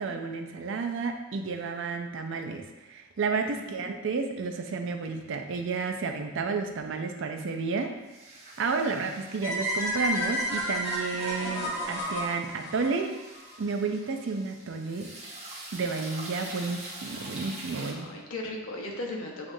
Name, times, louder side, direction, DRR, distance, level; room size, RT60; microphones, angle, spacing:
voice 1, 0.0-7.9 8.6-13.1 13.6-15.1 15.7-18.1, right 4 dB, 60° right, 5 dB, 0.4 m, -31 dB
voice 2, 3.6-3.9 11.4-11.5 17.8-19.5, left 2 dB, 80° left, 0 dB, 0.8 m, -37 dB
sound 1, 8.1-17.9, right 2 dB, 30° right, 0.8 m, -45 dB
sound 2, 9.4-13.5, equal, 20° left, 1.2 m, -31 dB
7.2 x 2.4 x 2.6 m, 1.1 s
head